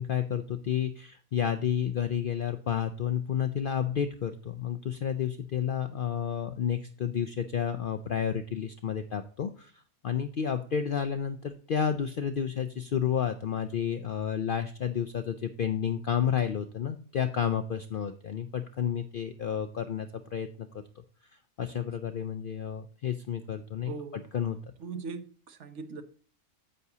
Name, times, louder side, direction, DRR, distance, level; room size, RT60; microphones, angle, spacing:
voice 1, 0.0-9.7 10.0-20.8 21.6-23.9 24.3-24.6, left 8 dB, 60° left, 0.5 m, -31 dB
voice 2, 23.8-24.3 24.8-26.0, right 5 dB, 65° right, 1.1 m, -40 dB
9.5 x 8.1 x 2.8 m
omnidirectional pair, 1.4 m